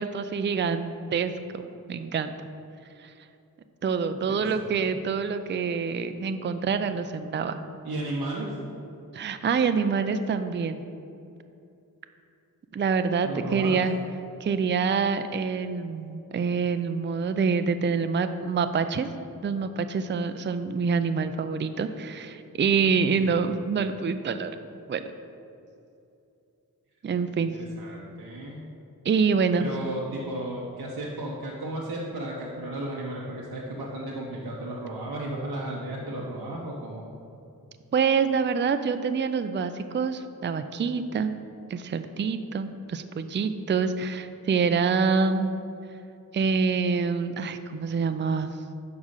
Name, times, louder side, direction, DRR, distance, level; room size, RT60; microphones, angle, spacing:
voice 1, 0.0-2.3 3.0-3.1 3.8-7.6 9.1-10.8 12.7-13.9 14.4-19.1 19.4-24.5 24.9-25.0 27.0-27.6 29.0-29.7 37.9-41.3 41.7-45.5 46.3-48.5, right 5 dB, 30° right, 9 dB, 0.4 m, -26 dB
voice 2, 4.3-4.9 7.8-8.6 13.2-13.8 23.2-23.3 27.3-28.7 29.5-37.0, right 1 dB, 85° right, -4 dB, 0.9 m, -34 dB
5.5 x 4.8 x 6.5 m, 2.7 s
cardioid pair, 50°, 36 cm